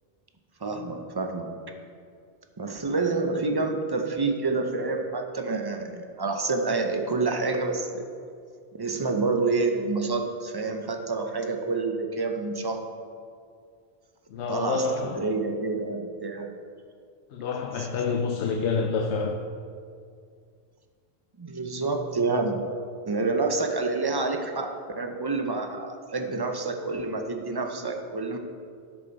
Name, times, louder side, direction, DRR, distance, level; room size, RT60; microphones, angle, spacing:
voice 1, 0.6-1.5 2.6-8.0 8.7-12.9 14.5-16.5 17.8-17.9 21.4-22.7 23.1-28.4, right 3 dB, 25° right, 4 dB, 0.6 m, -28 dB
voice 2, 14.3-15.3 17.3-19.4, left 4 dB, 90° left, 4 dB, 0.9 m, -28 dB
12.0 x 6.8 x 4.0 m, 2.3 s
omnidirectional pair, 1.1 m